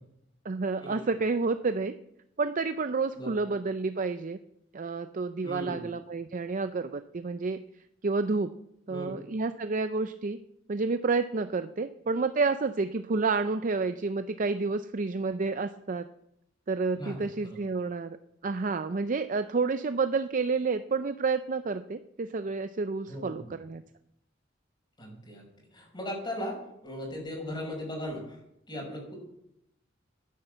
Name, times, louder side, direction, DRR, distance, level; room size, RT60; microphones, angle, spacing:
voice 1, 0.4-1.9 2.4-4.4 4.7-7.6 8.0-8.5 8.9-10.4 10.7-16.0 16.7-18.2 18.4-23.8, right 4 dB, 45° right, 10 dB, 0.5 m, -29 dB
voice 2, 5.4-5.9 8.9-9.1 16.9-17.6 23.1-23.4 25.0-25.4 25.7-28.4 28.7-29.2, equal, 25° left, 0 dB, 5.8 m, -38 dB
12.0 x 10.0 x 7.9 m, 0.79 s
head